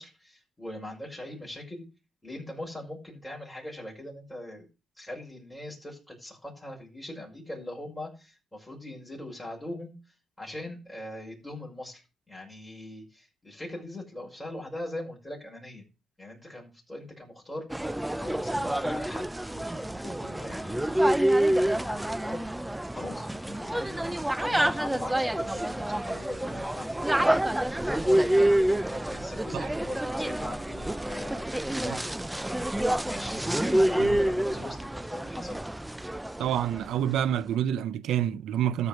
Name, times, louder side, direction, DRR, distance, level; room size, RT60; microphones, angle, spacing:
voice 1, 0.0-1.8 2.2-4.6 5.0-10.0 10.4-15.8 16.2-17.6 18.2-26.9 27.8-28.5 28.9-35.6, left 1 dB, 10° left, 5.7 m, -41 dB
sound 1, 17.7-37.0, right 1 dB, 10° right, 0.5 m, -28 dB
voice 2, 36.4-38.9, right 10 dB, 80° right, 0.6 m, -28 dB
13.5 x 4.9 x 6.6 m
cardioid pair, 90°, 0 cm